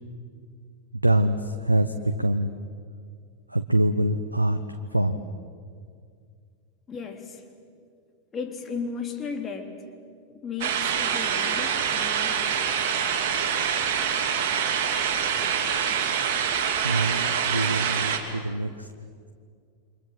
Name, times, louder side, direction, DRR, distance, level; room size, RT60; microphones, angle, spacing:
voice 1, 1.0-2.5 3.5-5.2 16.8-18.9, right 1 dB, 85° right, 9 dB, 0.9 m, -25 dB
voice 2, 6.9-7.4 8.3-9.7 10.4-12.8, left 5 dB, 20° left, 4 dB, 3.3 m, -35 dB
sound 1, 10.6-18.2, right 8 dB, 50° right, 3.0 m, -25 dB
29.0 x 24.5 x 7.8 m, 2.2 s
figure-of-eight pair, 90°, 0 cm